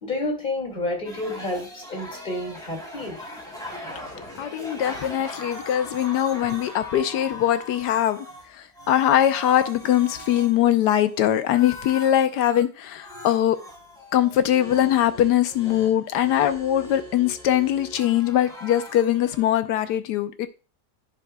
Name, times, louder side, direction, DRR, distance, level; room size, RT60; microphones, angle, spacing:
voice 1, 0.0-3.2, left 2 dB, 30° left, 2.5 m, -30 dB
sound 1, 1.0-8.5 8.7-12.7 13.0-19.5, left 2 dB, ahead, 3.1 m, -40 dB
voice 2, 4.4-8.3 8.5-13.6 14.1-20.5, left 11 dB, 85° left, 1.3 m, -22 dB
10.5 x 6.1 x 2.3 m
omnidirectional pair, 1.8 m